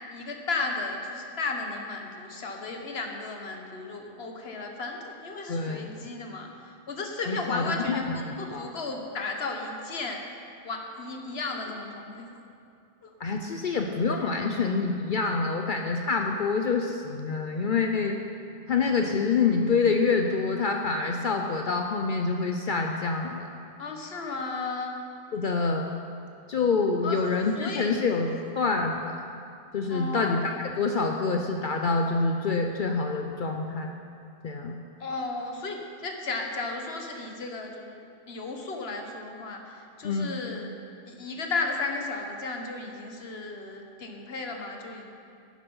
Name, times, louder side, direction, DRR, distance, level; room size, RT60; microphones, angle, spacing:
voice 1, 0.1-6.5 6.9-10.2 10.6-12.3 13.0-13.1 23.8-24.9 27.0-27.2 27.6-28.2 29.9-30.4 35.0-40.8 41.1-45.1, left 3 dB, 70° left, 3 dB, 1.4 m, -34 dB
voice 2, 5.5-6.1 7.3-8.7 13.2-18.2 18.7-23.5 25.3-25.9 26.5-28.3 28.6-29.2 29.7-33.9 34.4-34.8 40.0-40.3, left 4 dB, 55° left, 3 dB, 0.7 m, -26 dB
11.5 x 9.3 x 5.5 m, 2.5 s
omnidirectional pair, 1.1 m